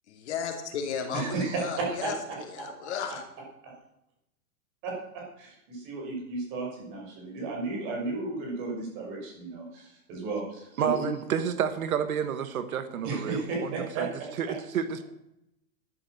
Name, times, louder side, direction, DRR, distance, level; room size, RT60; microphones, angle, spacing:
voice 1, 0.1-3.2, left 7 dB, 45° left, 3 dB, 3.0 m, -35 dB
voice 2, 1.1-2.1 3.6-3.7 4.8-11.1 13.0-14.1 14.5-14.6, right 3 dB, 25° right, -1 dB, 5.8 m, -33 dB
voice 3, 10.8-13.4 14.0-14.1 14.4-15.0, right 8 dB, 65° right, 10 dB, 1.5 m, -29 dB
12.5 x 10.5 x 6.5 m, 0.83 s
hypercardioid pair, 170°, 45 cm